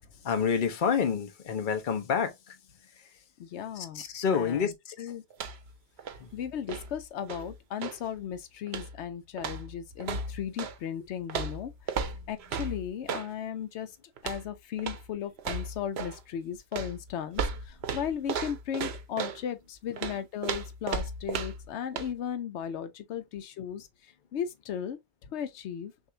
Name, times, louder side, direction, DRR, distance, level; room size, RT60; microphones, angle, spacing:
voice 1, 0.2-2.6 2.9-3.1 3.7-5.1 6.2-6.3 12.7-12.8, left 6 dB, 50° left, 0.9 m, -29 dB
voice 2, 3.4-4.0 4.3-5.2 6.3-14.0 14.2-25.0 25.3-25.9, left 9 dB, 85° left, 0.9 m, -36 dB
sound 1, 5.3-5.7 6.0-8.1 8.7-9.0 9.4-10.8 11.3-13.3 14.2-14.5 14.8-15.1 15.4-16.2 16.7-19.4 20.0-21.7 22.0-22.1, right 5 dB, 75° right, 0.9 m, -35 dB
6.3 x 2.4 x 2.7 m
omnidirectional pair, 1.1 m